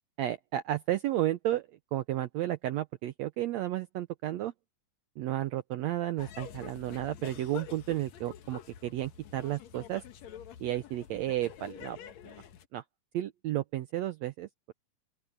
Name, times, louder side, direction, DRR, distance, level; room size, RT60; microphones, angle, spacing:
voice 1, 0.2-4.5 5.2-10.0 10.6-12.0 12.2-12.3 12.7-12.8 13.1-14.5, right 14 dB, 85° right, 1.5 m, -32 dB
sound 1, 6.2-12.7, left 8 dB, 60° left, 2.3 m, -47 dB
open air
omnidirectional pair, 3.9 m